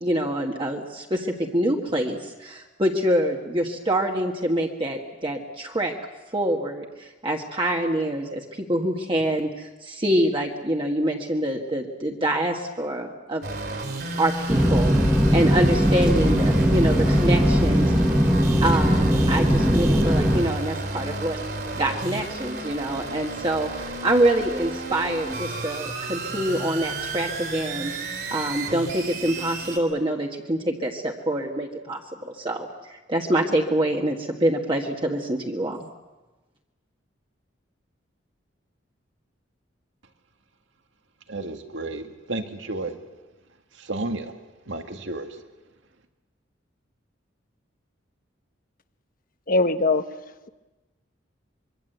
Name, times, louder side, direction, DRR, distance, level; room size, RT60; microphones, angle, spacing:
voice 1, 0.0-5.9 6.3-13.4 14.2-17.9 18.6-21.4 21.8-27.9 28.3-35.9, right 1 dB, 25° right, 0 dB, 1.6 m, -25 dB
sound 1, 13.4-29.8, right 3 dB, 55° right, 3.7 m, -33 dB
sound 2, 14.5-20.4, equal, 5° right, 1.7 m, -19 dB
voice 2, 41.3-42.0 42.3-42.9 43.9-44.3 44.7-45.3, right 2 dB, 80° right, 5 dB, 2.0 m, -31 dB
voice 3, 49.5-50.0, left 3 dB, 45° left, 10 dB, 1.1 m, -20 dB
25.0 x 23.5 x 8.0 m, 1.2 s
head